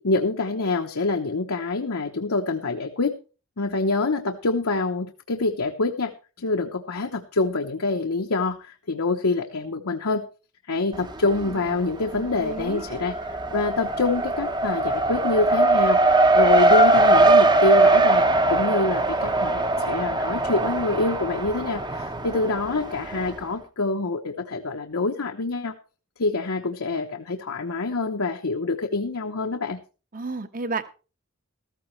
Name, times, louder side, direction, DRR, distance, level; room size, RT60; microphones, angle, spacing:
voice 1, 0.0-3.2 3.6-6.1 6.4-10.3 10.7-13.2 13.5-25.7 26.2-29.8, left 3 dB, 80° left, 3 dB, 1.0 m, -26 dB
Race car auto racing, 10.9-11.7 12.0-23.3, right 2 dB, 20° right, 0.7 m, -21 dB
voice 2, 11.1-11.8 12.1-12.8 30.1-30.8, right 3 dB, 40° right, 11 dB, 1.0 m, -33 dB
14.0 x 14.0 x 3.2 m, 0.34 s
head